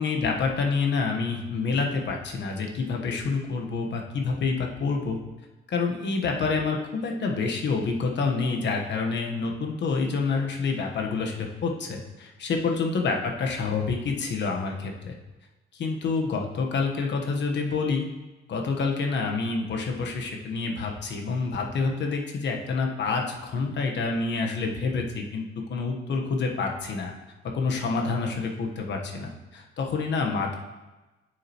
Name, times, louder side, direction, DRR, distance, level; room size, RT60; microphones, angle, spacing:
voice 1, 0.0-5.2 5.7-15.1 15.7-18.1 18.5-25.4 25.7-27.1 27.4-30.6, left 4 dB, 65° left, 2 dB, 1.2 m, -28 dB
9.6 x 6.4 x 3.0 m, 1.1 s
cardioid pair, 90°, 20 cm